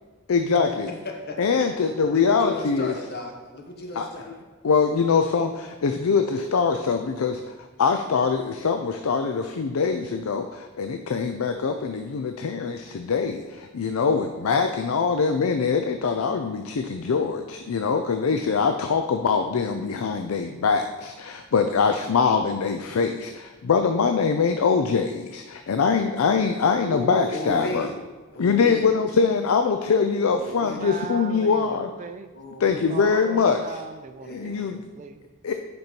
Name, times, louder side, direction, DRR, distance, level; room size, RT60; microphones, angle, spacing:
voice 1, 0.3-0.9 1.4-2.9 4.0-4.1 4.6-27.9 28.4-31.9 32.6-33.8 34.3-34.8 35.4-35.5, left 5 dB, 85° left, 6 dB, 0.5 m, -23 dB
voice 2, 1.0-1.4 1.8-1.9 2.1-4.4 27.3-27.9 28.3-28.9 30.3-30.9 32.3-32.9 34.2-34.7, left 1 dB, 50° left, 2 dB, 1.2 m, -35 dB
voice 3, 26.7-27.9 30.5-32.3 32.9-35.3, right 4 dB, 35° right, 9 dB, 0.3 m, -37 dB
7.9 x 5.3 x 4.5 m, 1.3 s
head